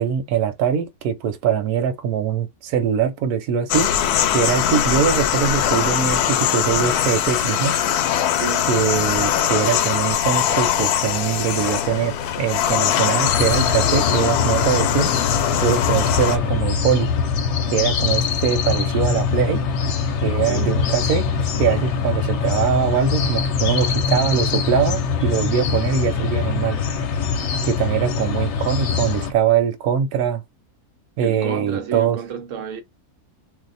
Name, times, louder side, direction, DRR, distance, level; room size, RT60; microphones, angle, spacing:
voice 1, 0.0-3.9 4.3-7.8 8.7-15.1 15.6-17.1 17.7-19.6 20.2-21.3 21.6-26.8 27.6-30.4 31.2-32.2, right 8 dB, 85° right, 1.1 m, -22 dB
sound 1, 3.7-16.4, left 10 dB, 85° left, 1.1 m, -21 dB
voice 2, 8.3-9.3 20.5-20.8 31.2-32.8, right 7 dB, 65° right, 1.0 m, -31 dB
sound 2, 13.2-29.3, left 6 dB, 60° left, 0.8 m, -23 dB
2.7 x 2.1 x 3.9 m
omnidirectional pair, 1.6 m